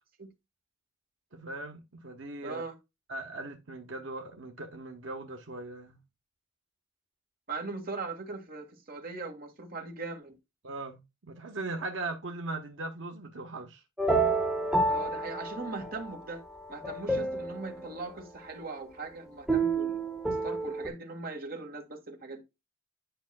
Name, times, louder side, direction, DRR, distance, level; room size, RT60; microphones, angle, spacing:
voice 1, 1.3-2.6 3.1-6.0 10.6-13.8, right 2 dB, 80° right, 1.1 m, -39 dB
voice 2, 2.4-2.7 7.5-10.4 14.9-16.4 16.7-20.0 20.4-22.4, right 3 dB, 50° right, 1.8 m, -40 dB
sound 1, 14.0-16.1 16.6-17.7 19.5-20.9, right 2 dB, 5° right, 1.4 m, -29 dB
10.0 x 5.6 x 2.2 m
head